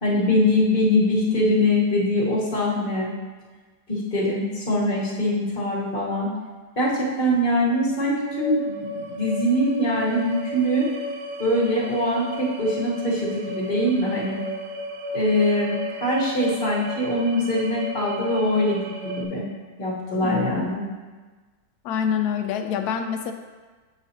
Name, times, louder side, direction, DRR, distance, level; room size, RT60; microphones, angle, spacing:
voice 1, 0.0-3.1 3.9-6.3 6.8-10.9 11.4-14.4 15.1-19.4 19.8-20.8, left 1 dB, 35° left, -5 dB, 1.3 m, -23 dB
sound 1, 7.7-19.3, equal, 70° right, 0.6 m, -34 dB
voice 2, 20.2-20.7 21.8-23.3, left 8 dB, 75° left, 6 dB, 1.1 m, -26 dB
7.9 x 4.8 x 2.8 m, 1.3 s
omnidirectional pair, 1.8 m